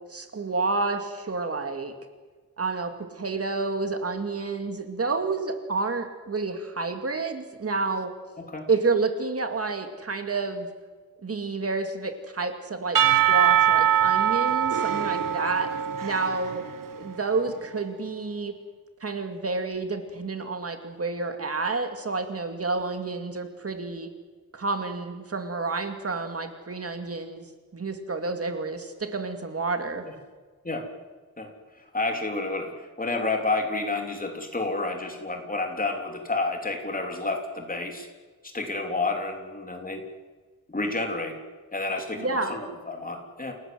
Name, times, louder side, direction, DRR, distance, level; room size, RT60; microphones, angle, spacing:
voice 1, 0.1-1.9 2.6-8.1 8.7-10.7 11.2-15.7 16.0-16.6 16.9-18.5 19.0-24.1 24.5-27.5 27.7-30.0 42.2-42.5, right 3 dB, 45° right, 6 dB, 2.3 m, -29 dB
voice 2, 8.4-8.7 30.6-30.8 31.4-31.5 31.9-38.1 38.5-40.0 40.7-41.4 41.7-43.5, left 3 dB, 25° left, 3 dB, 3.7 m, -30 dB
Percussion / Church bell, 12.9-17.1, right 10 dB, 85° right, 1.3 m, -23 dB
28.5 x 18.0 x 7.9 m, 1.4 s
wide cardioid pair, 150°, 32 cm